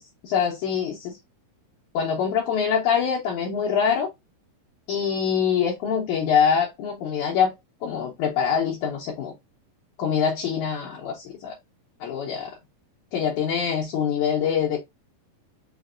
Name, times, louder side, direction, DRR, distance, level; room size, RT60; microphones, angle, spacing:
voice 1, 0.2-1.1 1.9-4.1 4.9-7.5 7.8-9.3 10.0-11.5 12.0-12.5 13.1-14.8, left 7 dB, 75° left, 1.9 m, -24 dB
5.7 x 2.5 x 2.4 m
omnidirectional pair, 4.4 m